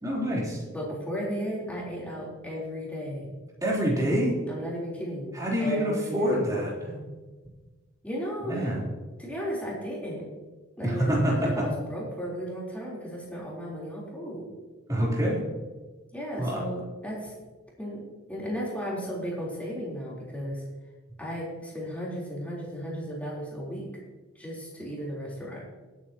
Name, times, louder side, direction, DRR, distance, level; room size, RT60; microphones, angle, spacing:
voice 1, 0.0-0.6 3.6-4.3 5.3-6.9 8.5-8.8 10.8-11.6 14.9-15.4 16.4-16.6, equal, 15° right, -5 dB, 3.8 m, -26 dB
voice 2, 0.7-3.3 4.5-6.5 8.0-8.7 9.2-10.3 10.8-14.5 16.1-17.3 17.8-18.0 18.3-20.6 21.2-23.9 24.4-25.6, equal, 5° left, -5 dB, 3.9 m, -35 dB
19.0 x 9.2 x 3.0 m, 1.3 s
head